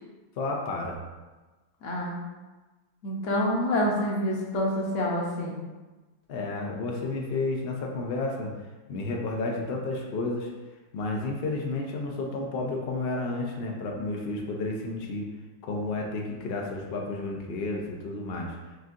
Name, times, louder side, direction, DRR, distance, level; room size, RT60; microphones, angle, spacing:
voice 1, 0.4-1.0 6.3-8.5 8.9-10.5 10.9-15.3 15.6-18.5, left 2 dB, 85° left, 0 dB, 0.5 m, -31 dB
voice 2, 1.8-2.2 3.0-5.6, left 1 dB, 55° left, -3 dB, 1.0 m, -27 dB
6.3 x 2.7 x 2.5 m, 1.2 s
omnidirectional pair, 1.8 m